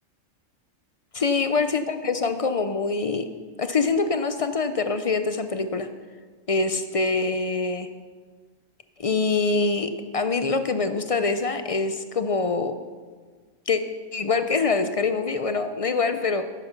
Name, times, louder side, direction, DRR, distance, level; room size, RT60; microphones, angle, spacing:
voice 1, 1.1-3.3 3.6-5.9 6.5-7.9 9.0-12.8 13.7-13.8 14.1-16.4, left 4 dB, 50° left, 9 dB, 0.4 m, -24 dB
10.5 x 10.0 x 5.9 m, 1.5 s
omnidirectional pair, 1.3 m